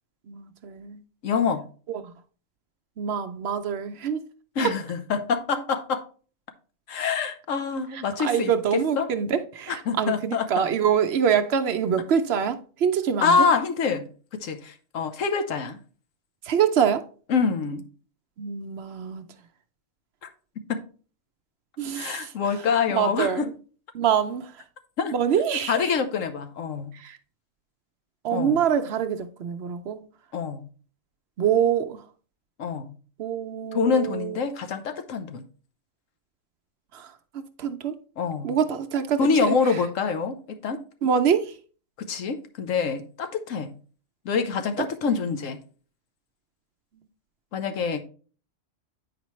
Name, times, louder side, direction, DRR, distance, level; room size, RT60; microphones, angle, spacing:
voice 1, 0.3-1.0 1.9-2.1 3.0-4.2 7.9-13.4 16.5-17.0 18.4-19.2 21.8-22.3 22.9-23.5 23.9-24.5 25.1-25.9 27.0-27.2 28.2-30.0 31.4-32.0 33.2-34.4 36.9-37.1 37.6-37.9 38.4-39.5 41.0-41.5, right 8 dB, 60° right, 0.8 m, -25 dB
voice 2, 1.2-1.6 4.6-6.1 6.9-8.5 9.0-9.1 9.7-10.5 13.2-14.1 14.4-15.8 17.3-17.8 20.7-20.8 21.9-23.5 25.0-25.2 25.7-26.9 28.3-28.6 30.3-30.6 32.6-32.9 33.7-35.4 38.2-38.5 39.2-40.8 42.0-43.7 44.2-45.6 47.5-48.0, left 5 dB, 90° left, 1.2 m, -26 dB
8.6 x 5.1 x 3.0 m
omnidirectional pair, 1.3 m